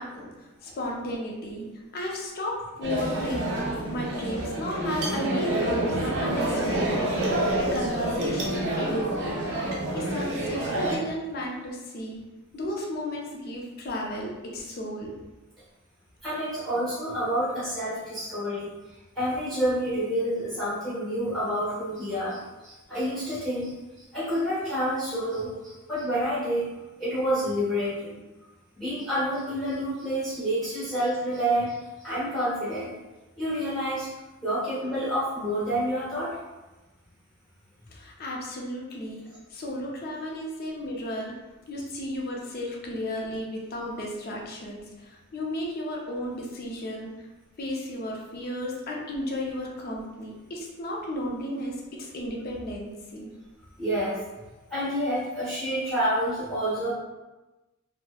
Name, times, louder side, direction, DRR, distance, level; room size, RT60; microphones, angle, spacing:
voice 1, 0.0-1.7 1.9-7.3 7.6-9.5 9.9-12.2 12.5-15.1 37.9-39.2 39.5-41.4 41.7-47.3 47.6-53.3, left 1 dB, 45° left, -1 dB, 0.5 m, -34 dB
sound 1, 2.8-11.0, right 1 dB, 55° right, 0.5 m, -28 dB
voice 2, 16.2-18.7 19.1-26.7 27.0-28.2 28.7-32.9 33.4-34.1 34.4-36.4 53.8-54.2 54.7-56.9, equal, ahead, -13 dB, 1.0 m, -28 dB
3.0 x 2.0 x 2.2 m, 1.1 s
head